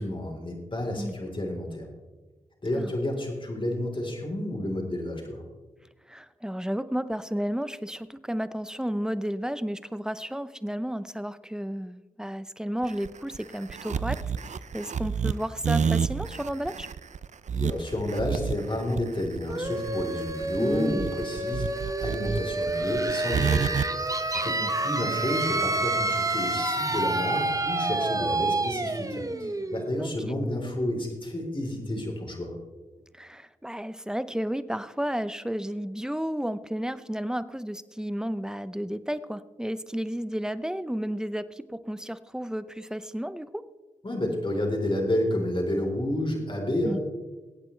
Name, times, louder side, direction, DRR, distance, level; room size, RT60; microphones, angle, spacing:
voice 1, 0.0-1.9 2.6-5.4 17.5-32.5 44.0-47.0, left 1 dB, 35° left, 0 dB, 4.0 m, -30 dB
voice 2, 6.1-16.9 20.6-21.0 24.3-24.7 30.0-30.1 33.1-43.6 46.8-47.0, equal, 5° right, 14 dB, 0.7 m, -32 dB
sound 1, 12.8-23.9, right 6 dB, 60° right, 0.5 m, -29 dB
sound 2, 19.5-31.0, right 2 dB, 25° right, 1.0 m, -29 dB
22.0 x 8.7 x 3.3 m, 1.2 s
cardioid pair, 45°, 14 cm